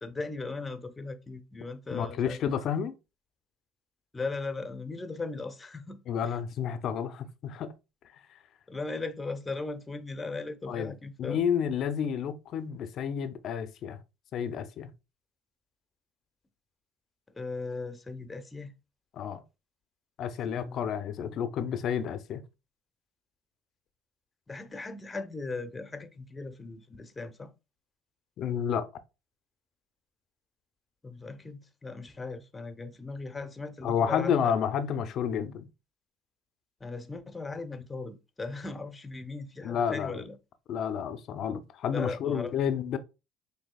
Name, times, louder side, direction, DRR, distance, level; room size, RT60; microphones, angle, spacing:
voice 1, 0.0-2.4 4.1-6.0 8.7-11.4 17.3-18.7 20.6-20.9 24.5-27.5 31.0-34.5 36.8-40.4 41.9-42.5, left 3 dB, 20° left, 0.7 m, -38 dB
voice 2, 1.9-2.9 6.1-7.7 10.7-10.9 11.2-14.0 14.3-14.9 19.1-19.4 20.2-22.4 28.4-28.9 33.8-35.7 39.6-40.2 40.7-43.0, left 8 dB, 55° left, 0.5 m, -30 dB
6.2 x 2.8 x 2.3 m
supercardioid pair, 80°, 0 cm